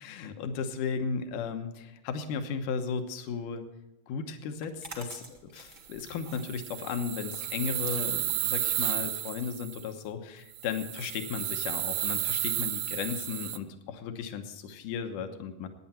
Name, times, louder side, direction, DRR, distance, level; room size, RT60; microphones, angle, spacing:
voice 1, 0.0-3.6 4.1-15.7, left 6 dB, 75° left, 7 dB, 2.6 m, -35 dB
sound 1, 4.5-10.3, right 2 dB, 35° right, 0.7 m, -50 dB
sound 2, 5.9-9.9 10.5-13.6, right 14 dB, 75° right, 2.2 m, -33 dB
17.0 x 10.0 x 4.3 m, 0.99 s
omnidirectional pair, 3.9 m